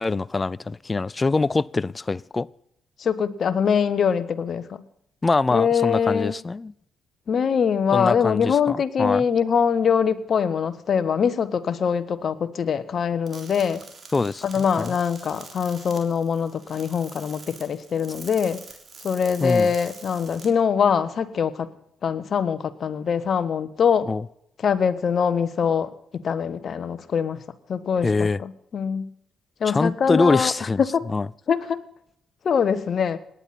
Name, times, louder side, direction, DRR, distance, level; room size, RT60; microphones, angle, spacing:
voice 1, 0.0-2.5 5.2-6.7 7.9-9.2 14.1-14.9 19.4-19.7 24.1-24.2 28.0-28.4 29.7-30.8 31.1-31.3, left 3 dB, 30° left, 0.5 m, -24 dB
voice 2, 3.0-4.8 5.5-6.3 7.3-13.8 14.4-18.6 19.0-21.7 22.0-24.1 24.6-27.4 27.7-29.1 29.6-30.5 30.8-31.1 31.5-31.8 32.4-33.2, left 7 dB, 55° left, 1.2 m, -23 dB
sound 1, 13.3-20.5, right 4 dB, 45° right, 3.7 m, -45 dB
27.5 x 10.0 x 4.3 m
hypercardioid pair, 45°, 0 cm